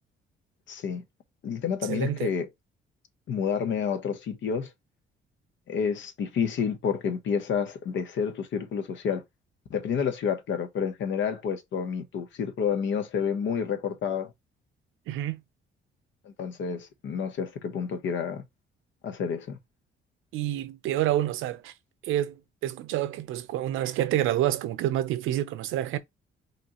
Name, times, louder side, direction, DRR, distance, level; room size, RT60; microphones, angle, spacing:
voice 1, 0.7-1.0 1.4-2.5 3.3-4.7 5.7-9.2 9.7-14.3 16.2-18.4 19.0-19.6, left 7 dB, 70° left, 0.9 m, -29 dB
voice 2, 1.9-2.3 15.1-15.4 20.3-21.7 22.0-26.0, right 13 dB, 90° right, 0.6 m, -28 dB
5.1 x 3.0 x 2.9 m
cardioid pair, 90°, 20 cm